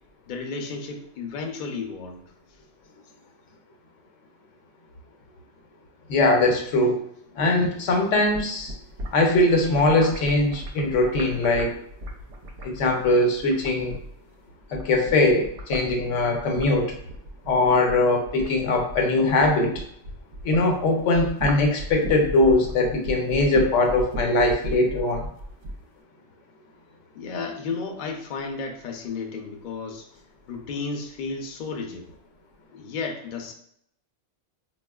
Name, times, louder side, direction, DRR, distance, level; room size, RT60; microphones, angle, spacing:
voice 1, 0.3-2.2 27.1-30.1 30.5-32.1 32.7-33.5, left 4 dB, 60° left, 3 dB, 0.5 m, -33 dB
voice 2, 6.1-7.0 7.4-8.7 9.1-11.8 12.6-14.0 14.7-16.9 17.5-19.8 20.4-25.3, left 2 dB, 80° left, 3 dB, 1.0 m, -21 dB
sound 1, 8.1-14.3 14.6-20.7 21.0-25.8, right 1 dB, 75° right, 0.8 m, -36 dB
4.1 x 2.3 x 2.2 m, 0.69 s
omnidirectional pair, 1.3 m